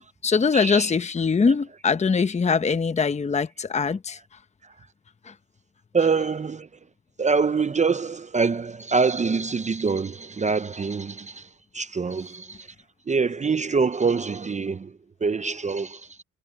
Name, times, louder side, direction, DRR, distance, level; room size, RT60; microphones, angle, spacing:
voice 1, 0.0-4.2, left 5 dB, 20° left, 0.9 m, -22 dB
voice 2, 0.5-0.9 1.5-1.6 5.9-6.7 7.2-11.5 11.7-12.7 13.1-14.9 15.2-16.2, right 4 dB, 25° right, 0.7 m, -25 dB
cardioid pair, 100°, 31 cm